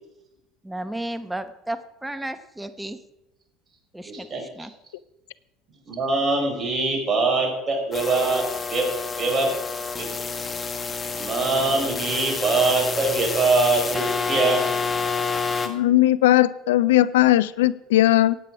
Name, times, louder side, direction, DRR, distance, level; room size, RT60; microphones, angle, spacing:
voice 1, 0.6-3.0 3.9-4.7, right 1 dB, 10° right, 11 dB, 1.1 m, -33 dB
voice 2, 4.0-4.7 5.9-8.4 8.7-9.5 10.0-10.1 11.2-14.7, right 3 dB, 30° right, 2 dB, 4.9 m, -23 dB
sound 1, 7.9-15.7, left 4 dB, 30° left, 1.7 m, -28 dB
voice 3, 15.6-18.4, left 14 dB, 80° left, 17 dB, 0.4 m, -18 dB
15.5 x 8.9 x 4.9 m, 0.90 s
hypercardioid pair, 70°, 0 cm